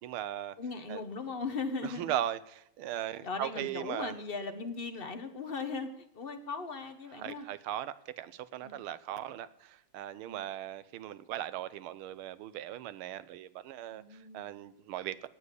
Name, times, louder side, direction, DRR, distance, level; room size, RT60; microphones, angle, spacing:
voice 1, 0.0-0.5 0.9-1.0 1.8-4.1 7.2-15.3, right 12 dB, 80° right, 1.6 m, -38 dB
voice 2, 0.6-2.1 3.2-7.5 8.6-8.8 10.3-10.5 13.9-14.5, left 4 dB, 35° left, 0.9 m, -38 dB
18.0 x 7.2 x 8.2 m
omnidirectional pair, 2.4 m